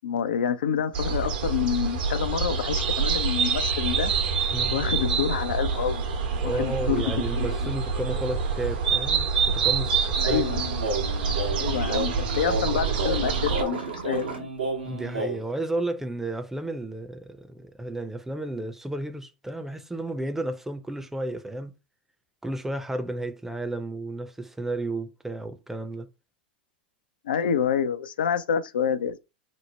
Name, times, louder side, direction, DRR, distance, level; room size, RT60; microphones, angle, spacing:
voice 1, 0.0-4.1 4.7-6.0 6.4-7.0 7.4-7.7 10.2-10.9 11.6-14.5 27.2-29.2, left 8 dB, 80° left, 0.4 m, -28 dB
sound 1, 0.9-13.6, right 5 dB, 65° right, 0.9 m, -26 dB
voice 2, 4.5-4.8 6.4-10.5 11.3-11.7 14.8-21.7 22.4-26.1, right 2 dB, 5° right, 0.5 m, -32 dB
sound 2, 10.2-15.4, right 2 dB, 85° right, 1.1 m, -31 dB
3.1 x 2.1 x 4.0 m
hypercardioid pair, 100°, 5 cm